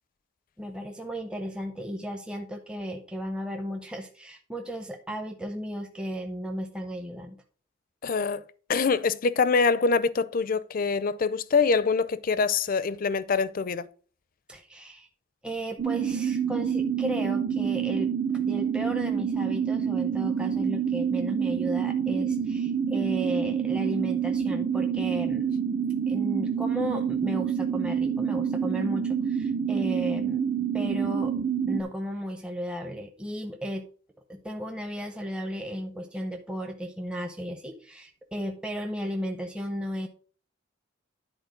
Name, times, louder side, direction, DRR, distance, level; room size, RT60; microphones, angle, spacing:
voice 1, 0.6-7.4 14.5-15.1 15.4-25.5 26.1-30.5 30.7-31.3 31.7-33.9 34.3-40.1, equal, 5° right, 0.7 m, -34 dB
voice 2, 8.0-8.4 8.7-13.9, left 4 dB, 45° left, 0.5 m, -24 dB
sound 1, 15.8-31.8, right 7 dB, 50° right, 0.8 m, -27 dB
10.5 x 4.1 x 5.1 m
head